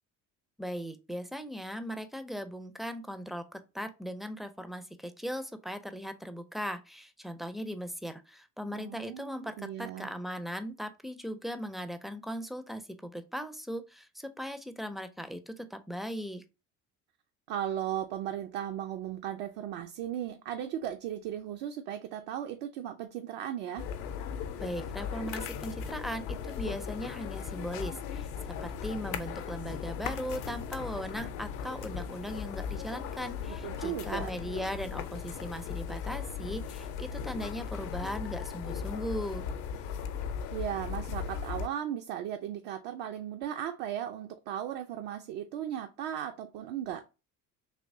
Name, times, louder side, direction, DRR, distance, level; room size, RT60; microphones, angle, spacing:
voice 1, 0.6-16.4 24.6-28.3 28.6-39.5, equal, ahead, 0.4 m, -38 dB
voice 2, 8.7-10.1 17.5-23.9 33.6-34.3 40.5-47.0, right 10 dB, 70° right, 0.6 m, -36 dB
sound 1, 23.8-41.7, left 7 dB, 70° left, 0.7 m, -37 dB
3.4 x 2.9 x 2.6 m
hypercardioid pair, 55°, 45 cm